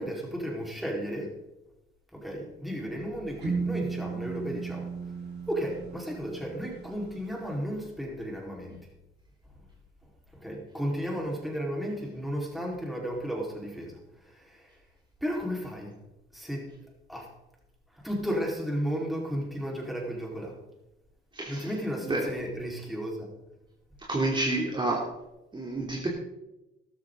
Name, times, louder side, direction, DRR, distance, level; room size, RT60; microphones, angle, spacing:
voice 1, 0.0-1.4 2.1-4.9 5.5-8.8 9.6-9.7 10.3-14.7 15.2-16.0 16.3-16.7 17.1-17.3 17.9-20.6 21.5-23.3, equal, ahead, -2 dB, 4.5 m, -34 dB
sound 1, 3.4-7.3, right 5 dB, 55° right, 4.2 m, -35 dB
voice 2, 21.3-21.7 22.0-22.3 24.1-25.1 25.5-26.1, right 2 dB, 25° right, -3 dB, 3.1 m, -29 dB
13.5 x 13.5 x 4.0 m, 0.93 s
cardioid pair, 90°, 20 cm